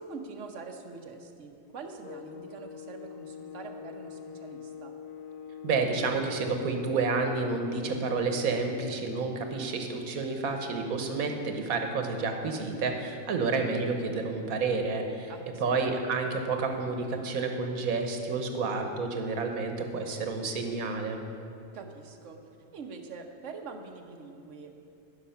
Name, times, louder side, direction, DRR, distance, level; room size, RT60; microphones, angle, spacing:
voice 1, 0.0-4.9 15.3-15.8 21.7-22.4 22.7-24.8, right 4 dB, 60° right, 4 dB, 1.2 m, -44 dB
sound 1, 2.0-9.1, left 7 dB, 65° left, 0.5 m, -44 dB
voice 2, 5.6-15.3 15.6-21.2, right 4 dB, 85° right, 4 dB, 1.5 m, -30 dB
15.0 x 5.9 x 5.7 m, 2.7 s
omnidirectional pair, 1.4 m